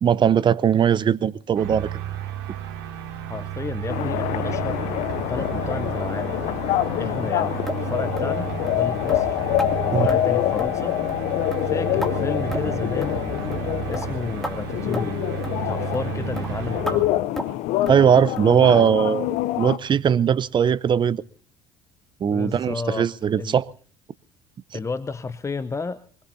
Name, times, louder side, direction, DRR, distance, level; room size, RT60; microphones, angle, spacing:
voice 1, 0.0-1.9 9.9-10.1 17.9-21.2 22.2-23.7, right 8 dB, 40° right, 0.8 m, -19 dB
sound 1, 1.6-17.2, right 11 dB, 75° right, 2.5 m, -32 dB
voice 2, 3.3-4.8 5.3-6.4 7.0-9.4 9.8-11.0 11.6-15.2 15.5-17.1 22.3-23.1 23.4-23.6 24.7-26.0, left 4 dB, 25° left, 0.8 m, -32 dB
sound 2, 3.9-19.8, left 15 dB, 65° left, 0.7 m, -26 dB
sound 3, 7.7-7.8 8.2-8.3 8.7-8.8 9.1-9.2 9.6-9.7 10.1-10.2 10.6-10.8 11.1-11.2 11.5-12.1 12.5-12.7 13.0-13.2 13.5-13.7 13.9-14.1 14.4-14.6 14.9-15.1 15.4-15.6 15.9-16.1 16.4-16.5 16.9-17.0 17.4-17.6 17.9-18.0 18.4-18.5 18.9-19.0 19.4-19.5 19.9-20.0, left 1 dB, 5° left, 2.8 m, -32 dB
24.0 x 21.0 x 2.7 m
hypercardioid pair, 60°, 13 cm